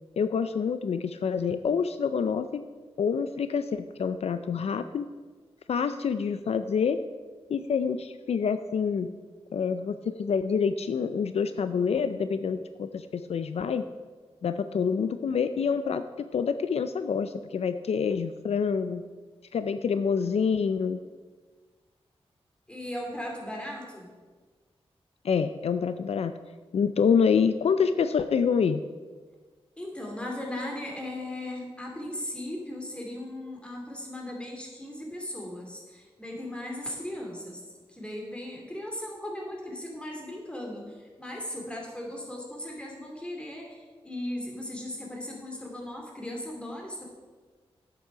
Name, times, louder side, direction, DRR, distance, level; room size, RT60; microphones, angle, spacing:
voice 1, 0.2-2.6 3.0-5.1 5.7-7.0 7.5-9.1 9.5-13.8 14.4-19.0 19.5-21.0 25.2-26.4 26.7-28.8, left 6 dB, 75° left, 11 dB, 0.4 m, -27 dB
voice 2, 22.7-24.1 29.8-37.6 37.9-47.1, left 1 dB, 10° left, -1 dB, 2.6 m, -37 dB
10.5 x 8.2 x 5.0 m, 1.4 s
wide cardioid pair, 105°, 11 cm